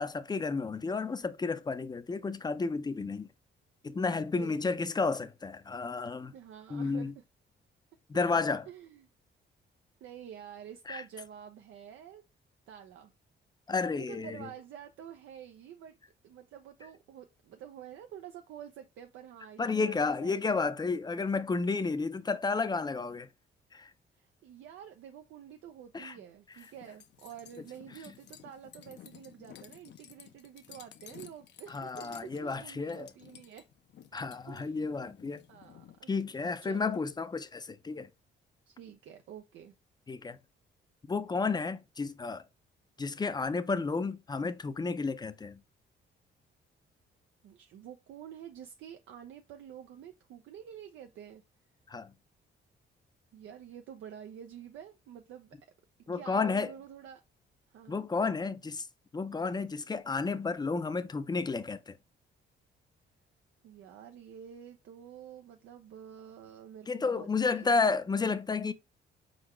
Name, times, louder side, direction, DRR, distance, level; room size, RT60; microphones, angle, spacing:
voice 1, 0.0-3.3 3.8-6.3 6.7-7.1 8.1-8.7 10.9-11.0 13.7-14.5 19.6-23.3 23.7-23.9 25.9-26.2 31.7-33.1 34.1-35.4 36.1-38.1 40.1-40.4 41.1-42.4 43.0-45.6 51.9-52.1 56.1-56.7 57.9-58.9 59.1-62.0 66.9-68.7, left 4 dB, 20° left, 0.5 m, -32 dB
voice 2, 4.1-4.6 6.3-7.1 8.7-9.1 10.0-12.2 12.7-13.1 13.9-16.0 16.2-20.7 24.1-33.6 34.5-35.1 35.5-36.1 36.4-37.0 38.7-39.7 47.4-51.4 53.3-55.6 56.1-57.2 57.7-58.1 63.6-67.7, right 9 dB, 80° right, 0.6 m, -48 dB
sound 1, 26.5-36.0, left 9 dB, 60° left, 0.6 m, -54 dB
4.4 x 3.9 x 3.0 m
cardioid pair, 90°, 20 cm